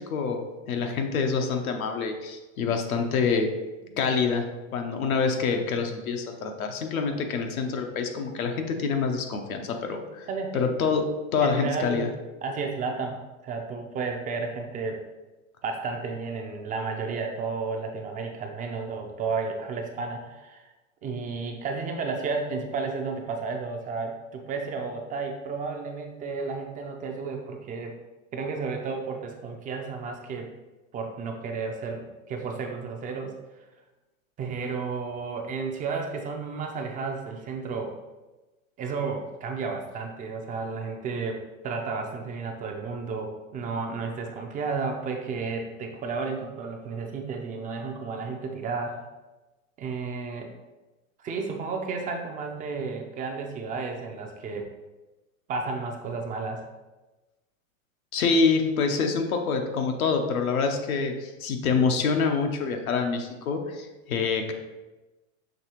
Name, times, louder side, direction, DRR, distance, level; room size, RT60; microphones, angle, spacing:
voice 1, 0.0-3.5 4.0-10.3 10.5-11.0 11.3-12.1 58.1-64.5, left 5 dB, 85° left, 4 dB, 0.8 m, -26 dB
voice 2, 10.3-10.7 11.4-12.1 12.4-15.0 15.6-20.7 21.0-28.0 28.3-30.5 30.9-33.4 34.4-38.0 38.8-49.0 49.8-50.5 51.2-54.7 55.5-56.7, right 4 dB, 20° right, 3 dB, 0.4 m, -32 dB
6.3 x 2.8 x 2.9 m, 1.1 s
hypercardioid pair, 115°, 41 cm